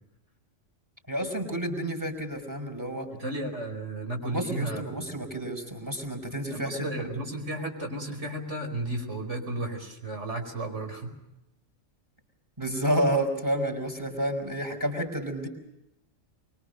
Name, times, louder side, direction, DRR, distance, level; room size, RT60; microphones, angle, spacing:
voice 1, 1.1-3.1 4.2-7.2 12.6-15.5, right 1 dB, 15° right, 4 dB, 5.2 m, -30 dB
voice 2, 3.1-4.9 6.5-11.1, right 2 dB, 65° right, 3 dB, 5.4 m, -33 dB
25.0 x 24.5 x 6.6 m, 0.90 s
omnidirectional pair, 1.3 m